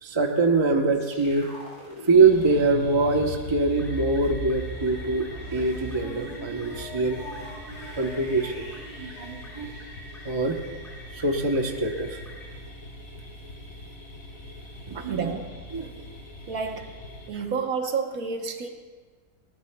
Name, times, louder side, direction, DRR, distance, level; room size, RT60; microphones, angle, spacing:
voice 1, 0.0-1.5 2.0-7.2 8.0-8.7 9.0-9.7 10.2-10.6 11.1-12.2 14.9-15.3 15.7-15.9 17.3-17.4, right 3 dB, 20° right, 3 dB, 0.8 m, -24 dB
sound 1, 0.9-10.8, right 2 dB, 80° left, 5.4 m, -39 dB
sound 2, 2.1-17.3, left 1 dB, 60° left, 2.2 m, -43 dB
sound 3, 3.8-12.5, left 1 dB, ahead, 3.0 m, -47 dB
voice 2, 15.1-15.5 16.5-16.9 17.3-18.7, right 5 dB, 65° right, 4 dB, 1.5 m, -29 dB
20.0 x 18.0 x 2.3 m, 1.5 s
omnidirectional pair, 1.7 m